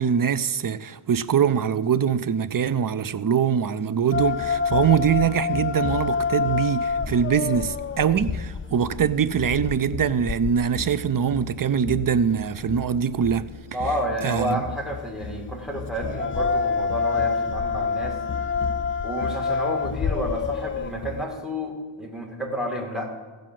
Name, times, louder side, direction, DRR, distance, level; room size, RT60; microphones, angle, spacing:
voice 1, 0.0-13.5 14.2-14.6, right 8 dB, 45° right, 0.5 m, -23 dB
sound 1, 4.1-21.2, left 5 dB, 25° left, 0.4 m, -28 dB
voice 2, 13.7-18.2 19.0-23.1, equal, ahead, 2.4 m, -30 dB
15.5 x 5.2 x 7.6 m
wide cardioid pair, 90°, 50 cm